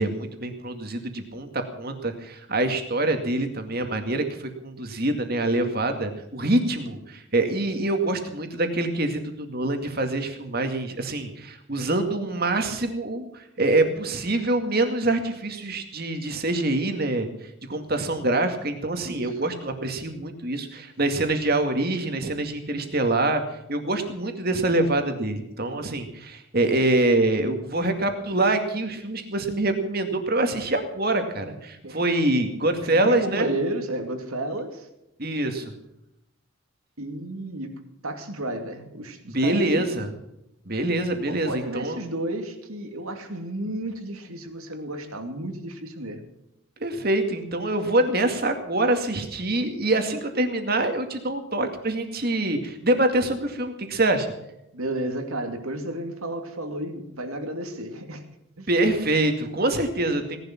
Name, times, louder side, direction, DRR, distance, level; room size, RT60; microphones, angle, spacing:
voice 1, 0.0-4.3 4.6-17.3 17.7-23.4 23.7-33.5 35.2-35.7 39.3-40.2 40.7-42.0 46.8-54.3 58.7-60.4, right 2 dB, 45° right, 6 dB, 2.2 m, -25 dB
voice 2, 32.8-34.9 37.0-37.8 38.0-40.0 41.3-46.3 54.7-58.2 58.6-58.7, right 1 dB, 85° right, 6 dB, 2.5 m, -32 dB
18.5 x 11.5 x 5.9 m, 0.85 s
head